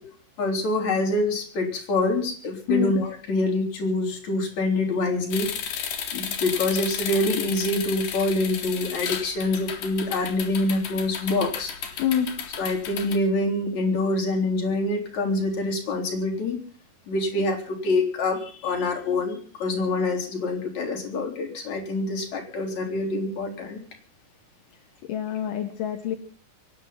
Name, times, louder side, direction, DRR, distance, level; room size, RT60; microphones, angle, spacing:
voice 1, 0.4-5.5 6.1-11.7 12.6-16.6 17.1-23.8, left 2 dB, 55° left, 3 dB, 4.6 m, -26 dB
sound 1, 5.3-13.2, left 7 dB, 90° left, 3.9 m, -33 dB
voice 2, 25.1-26.2, left 10 dB, 75° left, 4 dB, 3.0 m, -25 dB
24.5 x 10.5 x 5.7 m, 0.43 s
omnidirectional pair, 3.9 m